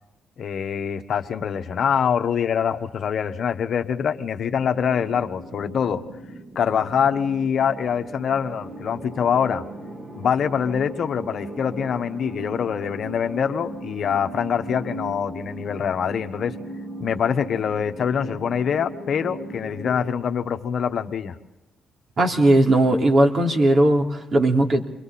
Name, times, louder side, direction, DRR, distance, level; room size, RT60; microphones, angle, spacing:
voice 1, 0.4-6.0 6.5-9.6 10.1-16.5 17.0-21.3, left 7 dB, 60° left, 7 dB, 1.4 m, -24 dB
sound 1, 4.5-20.1, right 1 dB, 30° right, 2.8 m, -38 dB
voice 2, 22.2-24.9, right 1 dB, 45° right, 2 dB, 3.3 m, -18 dB
29.0 x 23.0 x 4.3 m, 0.95 s
cardioid pair, 90°, 0 cm